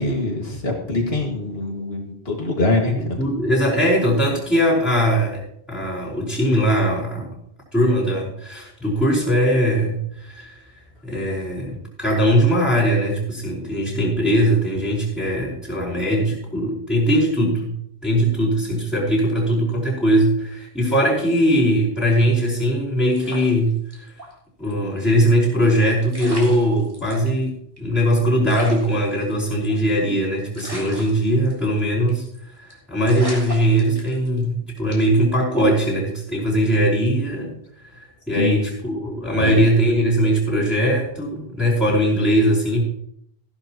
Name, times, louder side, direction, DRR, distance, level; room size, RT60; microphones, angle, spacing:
voice 1, 0.0-3.2 38.3-38.6 39.4-39.6, left 2 dB, 65° left, 1 dB, 2.5 m, -23 dB
voice 2, 2.9-5.4 5.7-7.3 7.7-10.6 11.0-17.7 18.0-24.1 24.6-32.2 32.9-37.5 38.3-42.8, equal, ahead, -9 dB, 4.9 m, -20 dB
sound 1, 23.1-24.3 24.6-24.7 25.8-25.9 26.1-27.3 27.8-27.9 28.0-28.1 28.5-30.0 30.5-31.8 32.1-32.4 32.7-32.8 33.1-34.4 34.9-35.2, right 1 dB, 20° right, 3.4 m, -36 dB
15.0 x 12.0 x 3.1 m, 0.69 s
omnidirectional pair, 1.1 m